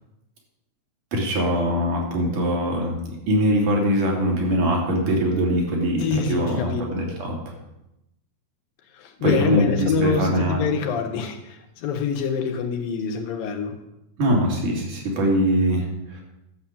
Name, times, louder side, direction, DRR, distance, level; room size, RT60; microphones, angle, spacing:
voice 1, 1.1-2.9 3.3-7.4 9.2-10.7 14.2-16.2, equal, 70° right, -1 dB, 4.3 m, -22 dB
voice 2, 6.0-6.8 9.0-13.7, left 6 dB, 85° left, 4 dB, 3.1 m, -25 dB
12.0 x 7.4 x 7.4 m, 0.88 s
omnidirectional pair, 3.9 m